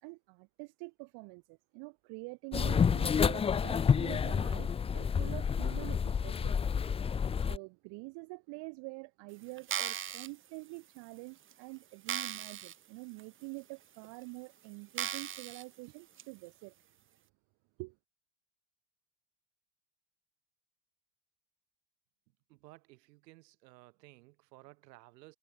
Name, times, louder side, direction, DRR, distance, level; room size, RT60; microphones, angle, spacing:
voice 1, 0.0-6.6 7.4-16.7 17.8-18.0, right 29 dB, 55° right, 2.9 m, -46 dB
sound 1, 2.5-7.6, left 6 dB, 10° left, 0.6 m, -29 dB
sound 2, 9.6-10.3 11.0-11.1 11.5-11.6 12.1-12.8 13.2-13.3 14.0-14.1 15.0-15.6 16.2-16.3, right 10 dB, 25° right, 1.5 m, -37 dB
voice 2, 22.5-25.4, right 20 dB, 80° right, 6.2 m, -57 dB
supercardioid pair, 150°, 48 cm